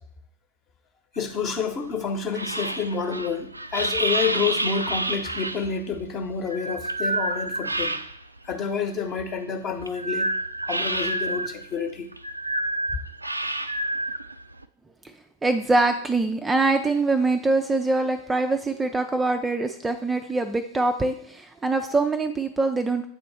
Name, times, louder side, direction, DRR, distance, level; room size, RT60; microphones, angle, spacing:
voice 1, 1.2-8.0 8.4-10.4 10.7-12.1, left 5 dB, 30° left, 6 dB, 0.9 m, -29 dB
sound 1, 1.2-8.4 8.8-14.6, right 1 dB, 85° right, 0.3 m, -29 dB
voice 2, 15.4-23.1, right 3 dB, 10° right, 6 dB, 0.4 m, -23 dB
8.2 x 3.1 x 4.2 m, 0.63 s
figure-of-eight pair, 90°, 0 cm